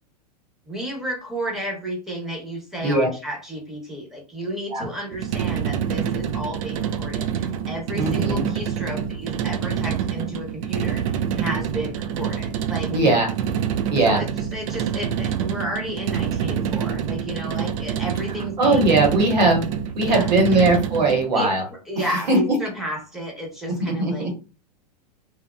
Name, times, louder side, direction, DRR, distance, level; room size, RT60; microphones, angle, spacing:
voice 1, 0.7-12.9 14.0-19.0 20.0-20.6 21.3-21.5 21.9-24.3, right 1 dB, ahead, -2 dB, 1.0 m, -32 dB
sound 1, 5.1-21.3, right 8 dB, 55° right, 0.4 m, -26 dB
voice 2, 7.9-8.5 12.9-13.3 13.9-14.2 18.6-19.6 20.0-21.6 22.0-22.5 23.7-24.3, right 2 dB, 80° right, 1 dB, 1.2 m, -20 dB
2.9 x 2.1 x 2.3 m, 0.34 s
hypercardioid pair, 110°, 21 cm